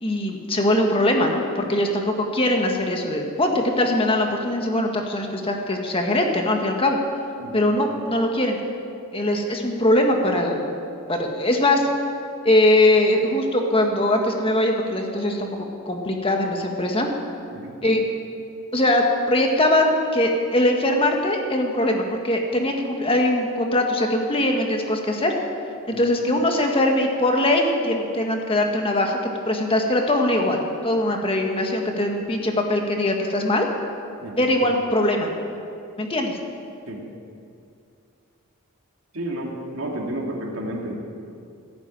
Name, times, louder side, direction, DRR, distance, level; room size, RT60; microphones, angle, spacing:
voice 1, 0.0-7.0 7.5-8.6 9.1-10.7 11.1-11.9 12.4-17.1 17.8-18.1 18.7-25.3 25.9-29.2 29.4-33.7 34.4-35.3 36.0-36.4, left 1 dB, 25° left, 2 dB, 1.7 m, -21 dB
voice 2, 39.1-41.1, right 1 dB, 65° right, -1 dB, 2.8 m, -31 dB
16.0 x 9.6 x 9.0 m, 2.5 s
head